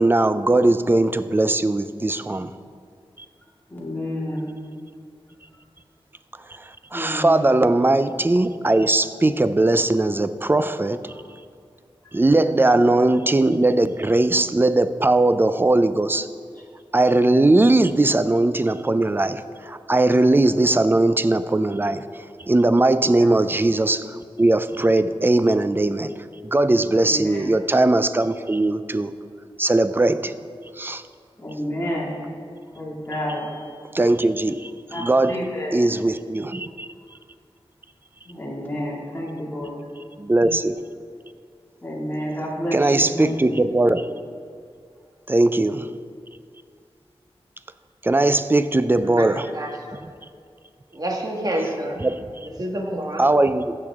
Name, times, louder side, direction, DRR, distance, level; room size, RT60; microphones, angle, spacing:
voice 1, 0.0-2.5 6.9-11.0 12.1-16.3 16.9-26.1 26.4-29.1 29.6-30.3 30.8-31.0 33.9-35.4 35.7-36.9 40.2-40.8 42.7-44.1 45.3-45.9 48.0-49.4 52.0-52.2 53.2-53.8, right 2 dB, 20° right, 12 dB, 0.4 m, -19 dB
voice 2, 3.7-4.5 6.9-7.5 12.4-13.0 20.5-20.7 23.0-23.6 27.0-27.5 31.4-32.1 32.7-33.7 34.9-35.8 38.3-39.9 41.8-43.6, equal, 20° left, -5 dB, 2.2 m, -30 dB
voice 3, 48.9-50.0 50.9-52.0 52.4-53.2, right 1 dB, 40° right, 0 dB, 1.5 m, -28 dB
14.5 x 6.7 x 3.6 m, 2.2 s
wide cardioid pair, 80°, 10 cm